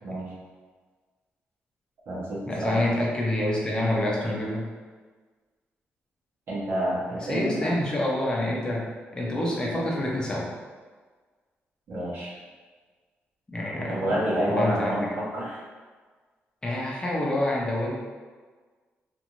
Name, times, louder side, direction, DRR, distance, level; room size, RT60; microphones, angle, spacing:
voice 1, 0.0-0.3 2.1-2.8 6.5-7.7 11.9-12.3 13.8-15.6, right 1 dB, 65° right, -7 dB, 1.0 m, -28 dB
voice 2, 2.5-4.6 7.3-8.8 9.1-10.5 13.5-14.2 14.5-14.9 16.6-18.0, left 1 dB, 20° left, -4 dB, 0.6 m, -27 dB
2.5 x 2.5 x 2.9 m, 1.4 s
cardioid pair, 125°, 4 cm